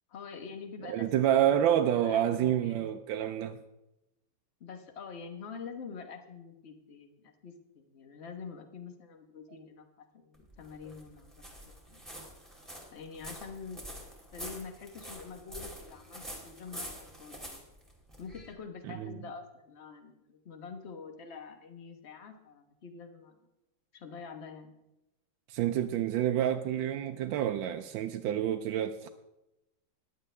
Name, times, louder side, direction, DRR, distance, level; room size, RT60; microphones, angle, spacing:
voice 1, 0.1-2.9 4.6-12.0 12.9-13.9 14.3-17.6 18.2-23.4 23.9-24.7, left 5 dB, 40° left, 6 dB, 1.1 m, -46 dB
voice 2, 0.8-3.6 18.8-19.2 25.5-29.1, right 11 dB, 75° right, 6 dB, 1.2 m, -28 dB
sound 1, 10.3-18.5, equal, ahead, 2.1 m, -46 dB
14.5 x 11.0 x 3.3 m, 0.94 s
omnidirectional pair, 2.3 m